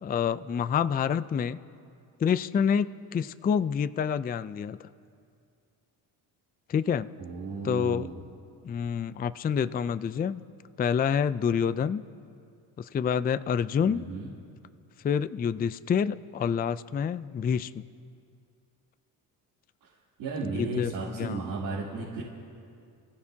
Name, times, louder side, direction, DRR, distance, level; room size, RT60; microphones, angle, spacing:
voice 1, 0.0-1.6 2.2-4.9 6.7-7.1 7.6-8.1 8.6-10.4 10.8-12.1 12.8-14.1 15.0-17.8 20.4-21.4, left 7 dB, 20° left, 13 dB, 0.4 m, -27 dB
voice 2, 7.2-8.2 13.8-14.3 20.2-22.2, right 3 dB, 85° right, -8 dB, 3.2 m, -34 dB
28.5 x 16.0 x 2.8 m, 2.4 s
cardioid pair, 85°, 43 cm